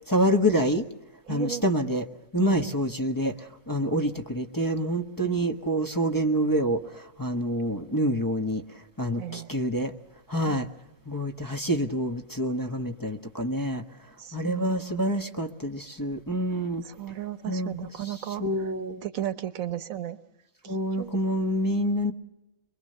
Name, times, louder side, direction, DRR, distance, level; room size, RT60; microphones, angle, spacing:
voice 1, 0.1-0.8 1.3-2.0 2.3-3.4 3.7-8.6 9.0-9.9 10.3-10.7 11.1-13.8 14.3-16.8 17.5-17.7 18.0-18.1 18.4-19.0 20.7-22.1, equal, 15° left, 1 dB, 1.1 m, -27 dB
voice 2, 1.3-1.6 2.4-2.6 3.9-4.0 9.2-9.5 10.4-10.6 14.2-14.9 16.8-18.4 19.0-20.2 20.6-21.1, right 11 dB, 90° right, 12 dB, 1.4 m, -35 dB
23.5 x 23.5 x 6.7 m, 0.96 s
omnidirectional pair, 1.4 m